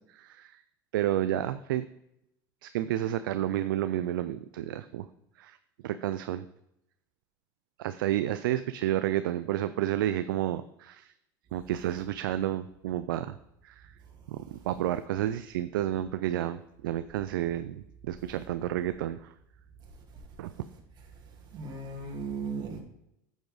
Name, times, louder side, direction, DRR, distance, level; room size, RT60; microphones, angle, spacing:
voice 1, 0.1-0.6 0.9-1.9 2.6-5.1 5.4-5.6 5.8-6.5 7.8-11.1 11.5-13.4 13.6-13.9 14.3-19.3 20.4-20.5, right 12 dB, 80° right, 12 dB, 0.4 m, -31 dB
voice 2, 21.5-22.8, right 4 dB, 40° right, -1 dB, 2.7 m, -36 dB
9.7 x 7.2 x 4.0 m, 0.81 s
supercardioid pair, 105°, 11 cm